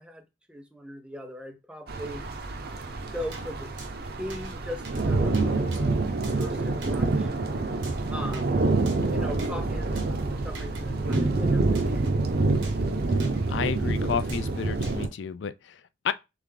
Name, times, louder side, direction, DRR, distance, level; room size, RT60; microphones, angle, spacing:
voice 1, 0.0-2.2 3.1-3.7 4.2-6.0 6.4-7.3 8.1-8.6 9.1-12.0, equal, 5° right, 0.6 m, -39 dB
sound 1, 1.9-15.1, right 3 dB, 55° right, 0.6 m, -27 dB
sound 2, 3.3-3.5 3.8-3.9 4.3-4.6 4.8-5.0 5.3-5.8 6.2-6.5 6.8-7.0 7.8-8.5 8.9-9.0 9.4-9.5 10.0-10.1 10.5-10.8 11.1-11.3 11.7-12.1 12.6-12.8 13.2-13.4 14.3-14.4 14.8-15.0, right 4 dB, 80° right, 1.1 m, -45 dB
voice 2, 13.5-16.1, left 7 dB, 75° left, 0.4 m, -31 dB
3.6 x 3.4 x 3.8 m
head